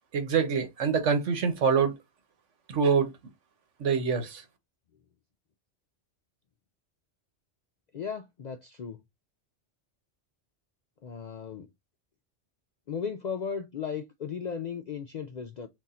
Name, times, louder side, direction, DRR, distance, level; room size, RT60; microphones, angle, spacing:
voice 1, 0.1-1.9 2.7-3.1 3.8-4.4, right 6 dB, 80° right, 1.3 m, -25 dB
voice 2, 7.9-9.0 11.0-11.7 12.9-15.7, left 6 dB, 65° left, 0.4 m, -36 dB
4.1 x 2.7 x 3.6 m
omnidirectional pair, 1.2 m